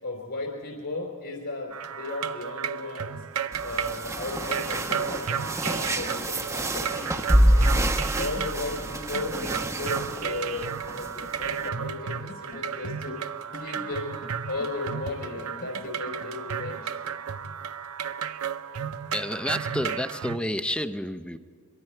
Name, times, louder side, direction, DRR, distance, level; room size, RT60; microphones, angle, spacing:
voice 1, 0.0-3.2 3.6-7.8 8.2-13.2 13.5-14.2 14.5-16.9, left 2 dB, 65° left, -1 dB, 3.6 m, -35 dB
sound 1, 1.7-20.4, right 7 dB, 80° right, 0.7 m, -33 dB
sound 2, 3.5-11.7, right 1 dB, 15° right, 0.9 m, -27 dB
sound 3, 8.0-11.4 11.7-11.8 12.1-16.4, left 2 dB, 35° left, 1.0 m, -47 dB
voice 2, 19.1-21.4, left 1 dB, 5° left, 10 dB, 0.6 m, -30 dB
25.0 x 23.0 x 4.5 m, 2.1 s
head